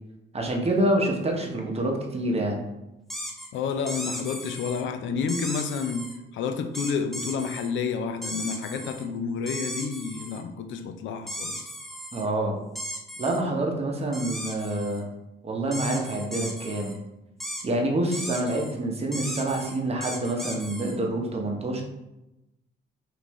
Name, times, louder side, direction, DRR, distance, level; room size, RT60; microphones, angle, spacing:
voice 1, 0.3-2.6 12.1-12.6 13.2-15.0 15.4-16.9 17.6-21.8, right 1 dB, 30° right, 1 dB, 0.8 m, -27 dB
sound 1, 3.1-3.5 3.9-4.8 5.3-6.2 6.7-7.7 8.2-9.1 9.5-10.4 11.3-12.3 12.8-13.4 14.1-15.0 15.7-17.0 17.4-17.6 18.1-18.7 19.1-21.0, equal, ahead, 0.7 m, -36 dB
voice 2, 3.5-6.1 6.3-11.7, left 6 dB, 75° left, 7 dB, 0.5 m, -30 dB
5.2 x 2.6 x 3.1 m, 0.94 s
cardioid pair, 90°, 20 cm